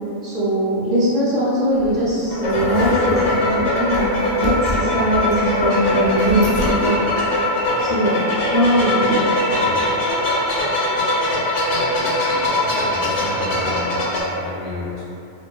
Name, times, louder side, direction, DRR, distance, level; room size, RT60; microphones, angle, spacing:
voice 1, 0.2-7.1 7.8-8.2 8.5-9.3, equal, ahead, -12 dB, 0.3 m, -21 dB
sound 1, 1.8-6.9, left 1 dB, 60° left, 0.6 m, -27 dB
sound 2, 2.3-14.2, left 1 dB, 90° left, 0.9 m, -21 dB
voice 2, 11.7-15.0, left 1 dB, 50° right, -10 dB, 0.8 m, -32 dB
2.6 x 2.2 x 2.3 m, 2.7 s
omnidirectional pair, 1.2 m